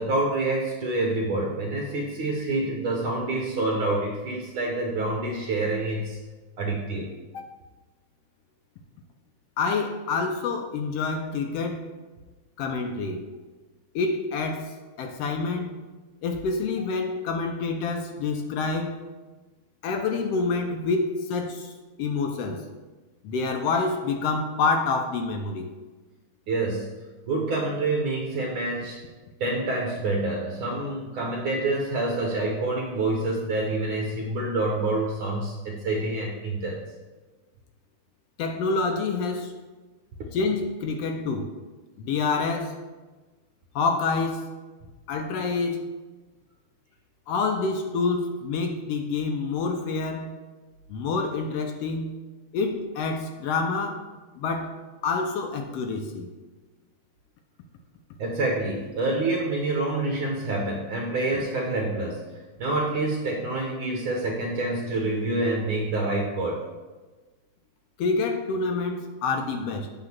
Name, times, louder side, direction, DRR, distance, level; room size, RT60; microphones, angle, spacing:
voice 1, 0.0-6.2 6.6-7.1 26.5-26.9 27.3-29.0 29.4-36.8 58.2-66.6, right 2 dB, 75° right, -1 dB, 1.1 m, -27 dB
voice 2, 9.6-11.9 12.6-13.2 13.9-15.7 16.2-19.0 19.8-21.7 22.0-22.6 23.2-25.7 38.4-39.5 40.3-41.5 42.0-42.8 43.7-44.5 45.1-45.9 47.3-50.3 50.9-52.2 52.5-54.0 54.4-54.7 55.0-56.3 68.0-69.9, left 4 dB, 75° left, 4 dB, 1.4 m, -27 dB
8.9 x 3.6 x 5.8 m, 1.3 s
omnidirectional pair, 3.4 m